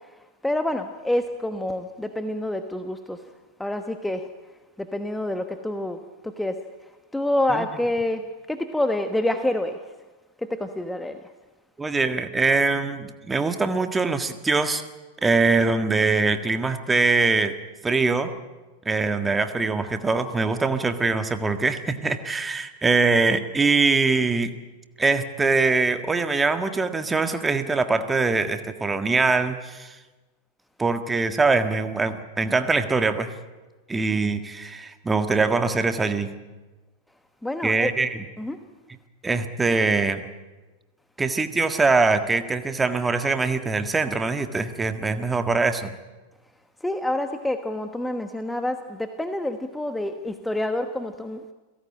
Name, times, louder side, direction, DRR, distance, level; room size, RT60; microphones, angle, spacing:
voice 1, 0.4-3.2 3.6-4.3 4.8-6.6 7.1-9.8 10.4-11.2 37.4-37.9 38.4-38.6 46.8-51.4, left 1 dB, 5° left, 8 dB, 1.2 m, -27 dB
voice 2, 11.8-14.8 15.2-17.5 17.8-18.3 18.8-24.5 25.0-29.9 30.8-33.3 33.9-36.3 37.6-38.2 39.2-40.2 41.2-45.9, right 3 dB, 10° right, 8 dB, 1.6 m, -23 dB
29.0 x 17.5 x 8.8 m, 1.2 s
figure-of-eight pair, 90°, 0 cm